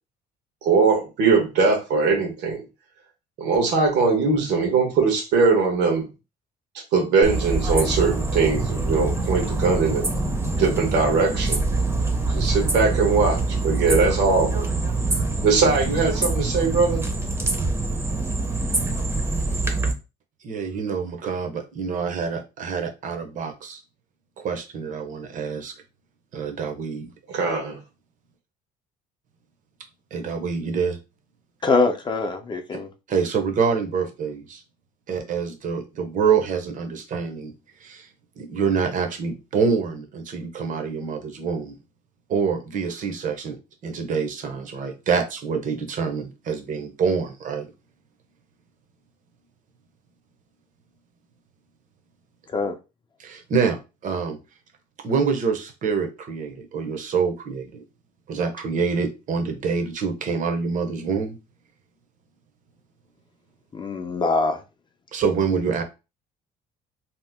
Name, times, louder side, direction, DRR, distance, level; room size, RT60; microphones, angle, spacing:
voice 1, 0.6-2.6 3.4-6.0 6.9-10.1 10.6-11.6 12.3-14.7 15.4-17.0 27.3-27.8, right 4 dB, 85° right, 1.1 m, -21 dB
sound 1, 7.2-19.9, right 2 dB, 15° right, 0.6 m, -25 dB
voice 2, 20.4-23.8 24.4-25.7 26.3-27.1 30.1-31.0 33.1-34.6 35.1-37.5 37.8-38.1 38.4-41.8 42.3-47.7 53.2-54.4 55.0-57.8 58.3-61.4 65.1-65.8, right 5 dB, 50° right, 0.7 m, -26 dB
voice 3, 31.6-32.9 52.5-52.7 63.7-64.6, left 3 dB, 30° left, 0.5 m, -23 dB
2.8 x 2.0 x 3.4 m
cardioid pair, 110°, 17 cm